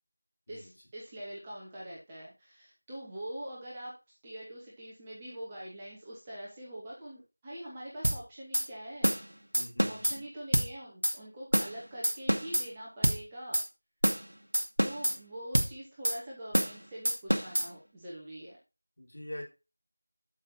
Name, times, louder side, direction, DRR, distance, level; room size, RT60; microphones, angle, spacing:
voice 1, 0.5-9.1 9.9-13.6 14.8-18.6, right 1 dB, 10° right, -6 dB, 1.1 m, -44 dB
sound 1, 8.0-8.2 8.5-8.7 9.0-9.2 9.5-10.2 10.5-10.7 11.0-11.2 11.5-11.7 12.0-12.7 13.0-13.2 13.5-13.7 14.0-14.2 14.5-15.2 15.5-15.7 16.0-16.2 16.5-16.8 17.1-17.7, equal, 65° right, 1.3 m, -27 dB
voice 2, 9.5-10.1 19.0-19.4, left 1 dB, 40° left, -1 dB, 3.4 m, -43 dB
12.0 x 5.6 x 2.7 m, 0.28 s
figure-of-eight pair, 175°, 0 cm